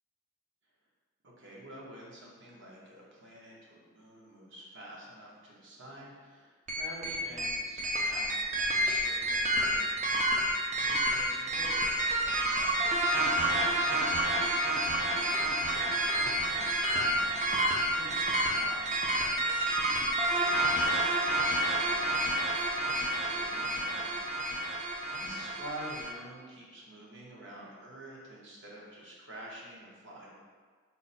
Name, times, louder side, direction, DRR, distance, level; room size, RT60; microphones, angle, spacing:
voice 1, 1.2-14.2 15.1-24.1 24.7-30.4, right 1 dB, 60° right, -5 dB, 0.9 m, -49 dB
sound 1, 6.7-26.1, right 1 dB, 35° right, 0.3 m, -29 dB
4.0 x 2.1 x 4.0 m, 1.5 s
head